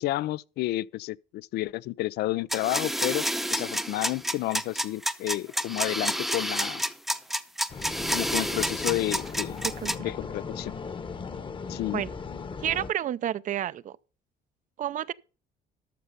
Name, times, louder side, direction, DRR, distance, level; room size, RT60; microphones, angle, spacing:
voice 1, 0.0-6.8 8.1-9.6 10.0-10.7 11.7-12.0, left 17 dB, 75° left, 0.4 m, -31 dB
sound 1, 2.5-9.9, equal, ahead, 0.7 m, -29 dB
sound 2, 7.7-12.9, left 5 dB, 30° left, 1.0 m, -37 dB
voice 2, 12.6-14.0 14.8-15.1, right 11 dB, 50° right, 0.5 m, -30 dB
13.0 x 6.7 x 5.2 m
cardioid pair, 110°, 17 cm